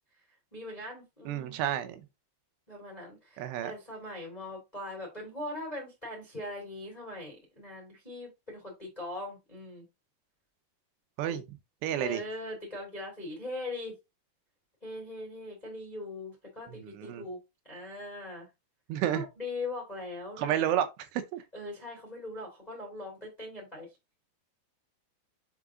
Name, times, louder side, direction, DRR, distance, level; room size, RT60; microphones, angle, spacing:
voice 1, 0.5-1.6 2.7-9.8 11.3-11.4 12.0-13.9 14.8-17.4 17.6-18.5 19.1-20.6 21.5-23.9, left 2 dB, 10° left, 2.1 m, -40 dB
voice 2, 1.3-2.1 3.4-3.7 11.2-11.4 11.8-12.2 17.0-17.2 18.9-19.2 20.4-21.4, right 11 dB, 80° right, 2.9 m, -30 dB
7.4 x 3.8 x 3.6 m
omnidirectional pair, 4.9 m